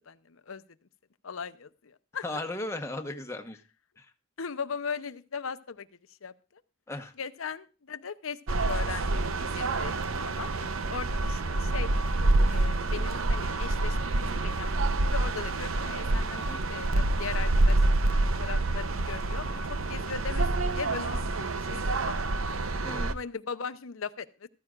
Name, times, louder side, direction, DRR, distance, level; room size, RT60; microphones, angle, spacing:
voice 1, 0.1-0.6 1.2-2.3 4.4-5.9 6.2-6.6 7.2-8.4 8.6-9.9 10.2-10.5 10.9-11.9 12.5-16.4 16.7-21.3 21.7-22.1 23.1-24.5, left 6 dB, 75° left, 12 dB, 0.7 m, -38 dB
voice 2, 2.2-3.6 4.0-4.1 6.9-7.1 16.3-16.6 22.8-23.2, left 2 dB, 15° left, 5 dB, 1.1 m, -36 dB
sound 1, 8.5-23.1, right 2 dB, 75° right, 0.8 m, -27 dB
14.5 x 14.0 x 2.5 m, 0.32 s
head